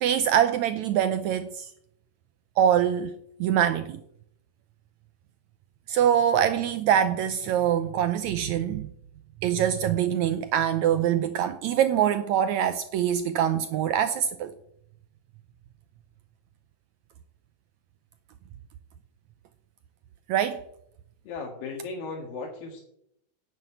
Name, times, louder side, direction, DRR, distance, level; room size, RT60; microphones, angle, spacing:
voice 1, 0.0-1.7 2.6-3.1 3.4-4.0 5.9-8.9 9.4-14.5 20.3-20.6, right 9 dB, 80° right, 1.7 m, -24 dB
voice 2, 21.2-22.8, left 4 dB, 80° left, 3.5 m, -36 dB
10.0 x 9.4 x 9.3 m
omnidirectional pair, 4.0 m